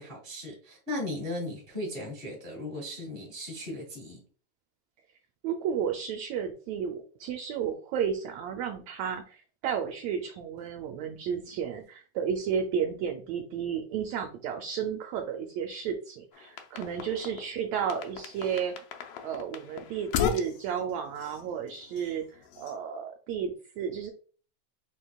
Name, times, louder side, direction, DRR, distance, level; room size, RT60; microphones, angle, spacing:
voice 1, 0.0-4.2, left 1 dB, 25° right, 0 dB, 1.5 m, -37 dB
voice 2, 5.4-18.7 19.2-24.1, right 7 dB, 75° right, 4 dB, 1.7 m, -33 dB
sound 1, 16.3-17.5 17.9-22.7, left 7 dB, 75° left, 1.4 m, -36 dB
6.1 x 3.7 x 2.3 m, 0.40 s
omnidirectional pair, 3.4 m